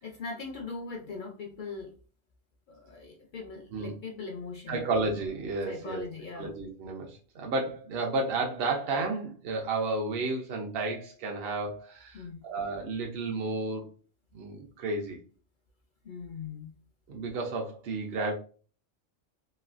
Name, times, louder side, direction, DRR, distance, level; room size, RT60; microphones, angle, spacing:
voice 1, 0.0-1.9 2.7-4.8 5.7-6.5 12.1-12.5 16.0-16.7, left 4 dB, 60° left, 2 dB, 0.5 m, -40 dB
voice 2, 4.7-6.0 6.4-13.9 14.3-15.2 17.1-18.3, right 3 dB, 60° right, 1 dB, 0.7 m, -32 dB
3.1 x 2.3 x 2.4 m, 0.39 s
omnidirectional pair, 1.2 m